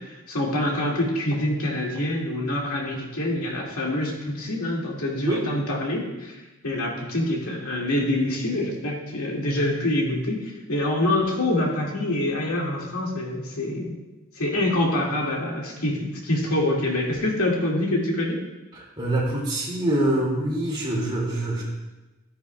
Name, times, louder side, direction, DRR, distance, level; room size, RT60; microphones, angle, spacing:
voice 1, 0.0-6.4 6.6-14.0 14.4-18.4, left 1 dB, 80° left, -2 dB, 2.1 m, -26 dB
voice 2, 18.7-21.6, right 1 dB, 20° right, -4 dB, 2.3 m, -25 dB
12.5 x 9.5 x 2.3 m, 1.1 s
head